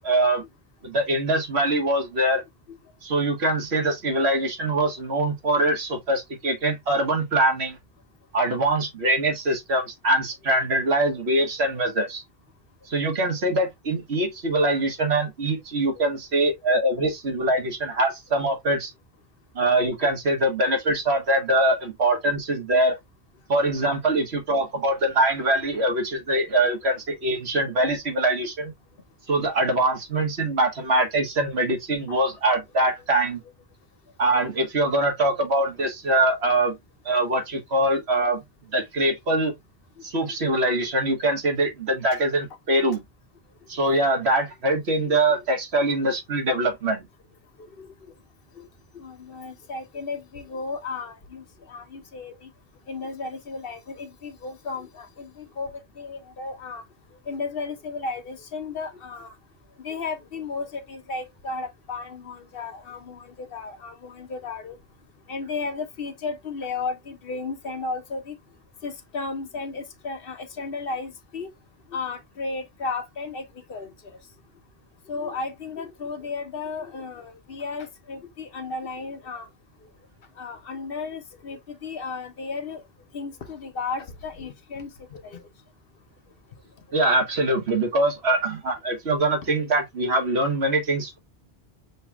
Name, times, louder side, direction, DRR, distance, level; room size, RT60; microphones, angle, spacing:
voice 1, 0.0-0.4 0.8-2.4 3.0-7.8 8.3-12.2 12.9-18.9 19.6-23.0 23.5-28.7 29.3-33.4 34.2-36.8 37.1-38.4 38.7-39.5 40.0-43.0 43.7-47.0 86.9-91.2, right 1 dB, 75° right, 1.8 m, -23 dB
voice 2, 47.6-47.9 48.5-48.7 48.9-52.5 52.9-56.8 57.3-59.3 59.8-64.8 65.3-68.4 68.8-71.5 71.9-74.2 75.1-79.5 79.8-79.9 80.4-82.8 83.1-85.4, left 4 dB, 60° left, 1.0 m, -34 dB
6.3 x 3.1 x 2.4 m
omnidirectional pair, 1.1 m